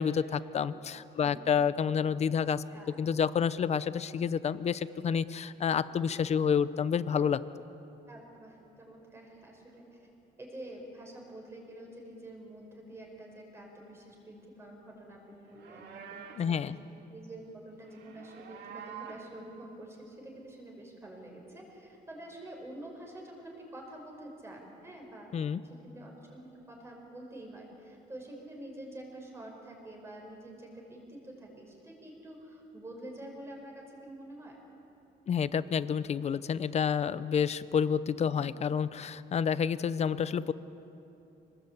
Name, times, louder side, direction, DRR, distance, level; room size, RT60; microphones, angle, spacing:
voice 1, 0.0-2.6 3.0-7.4 16.4-16.7 25.3-25.6 35.3-40.5, left 7 dB, 35° left, 15 dB, 0.6 m, -29 dB
voice 2, 1.2-1.5 2.7-3.0 8.1-10.1 10.4-16.8 17.1-25.3 25.6-34.6 38.3-38.4, right 1 dB, 15° right, 0 dB, 5.6 m, -47 dB
Livestock farm animals working animals, 15.4-16.5 17.8-19.3, right 7 dB, 70° right, 2.3 m, -47 dB
27.0 x 19.5 x 8.6 m, 2.9 s
cardioid pair, 165°, 18 cm